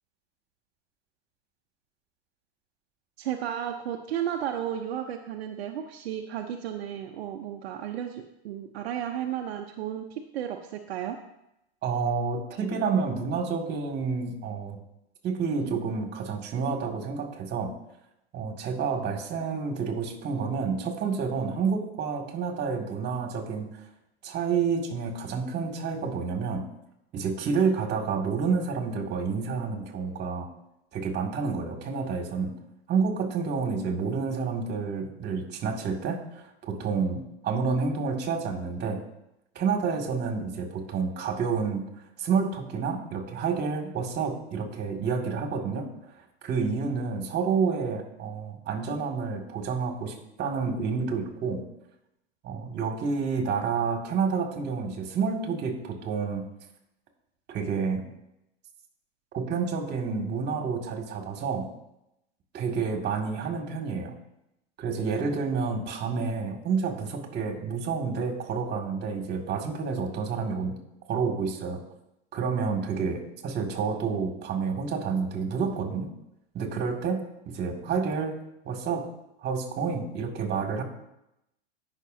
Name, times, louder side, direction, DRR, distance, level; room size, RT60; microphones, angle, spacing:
voice 1, 3.2-11.2, right 10 dB, 75° right, 4 dB, 0.8 m, -33 dB
voice 2, 11.8-14.8 15.2-17.7 18.3-23.7 24.2-26.6 27.1-30.5 30.9-32.5 32.9-39.0 39.6-41.8 42.2-45.9 46.4-51.6 52.4-56.4 57.5-58.0 59.3-61.7 62.5-64.1 64.8-70.7 71.1-71.8 72.3-76.1 76.5-78.4 78.6-79.1 79.4-80.8, right 5 dB, 30° right, 2 dB, 2.2 m, -29 dB
17.5 x 6.1 x 2.7 m, 0.86 s
hypercardioid pair, 110°, 32 cm